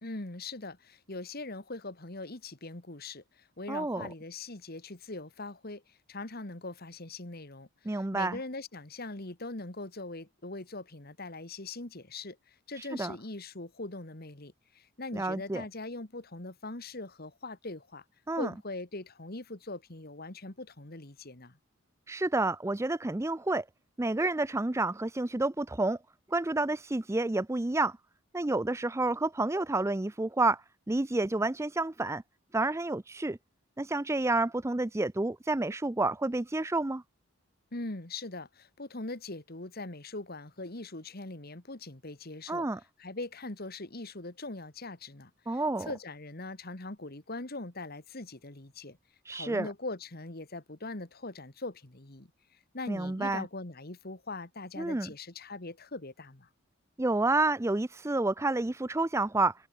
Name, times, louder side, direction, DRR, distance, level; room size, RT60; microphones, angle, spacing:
voice 1, 0.0-18.0 18.4-21.6 37.7-42.7 43.0-49.0 49.3-56.5, left 2 dB, 45° left, 2.0 m, -41 dB
voice 2, 3.7-4.1 7.9-8.4 12.8-13.2 15.1-15.6 18.3-18.5 22.1-23.6 24.0-26.0 26.3-28.0 28.3-32.2 32.5-33.4 33.8-37.0 42.5-42.8 45.5-45.9 49.3-49.7 52.9-53.5 54.8-55.1 57.0-59.5, right 2 dB, 15° right, 0.5 m, -29 dB
head